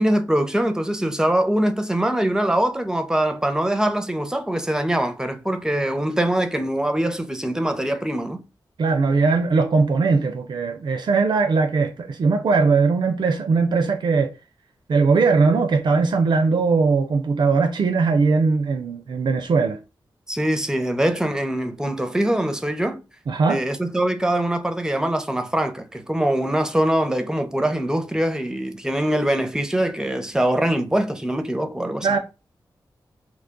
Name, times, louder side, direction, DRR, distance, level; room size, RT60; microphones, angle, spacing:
voice 1, 0.0-8.4 20.3-23.0 23.5-32.1, right 1 dB, 10° right, 0.5 m, -23 dB
voice 2, 8.8-14.3 14.9-19.8 23.3-23.6 32.0-32.2, right 4 dB, 65° right, 0.4 m, -20 dB
3.0 x 2.2 x 3.7 m
wide cardioid pair, 70°, 8 cm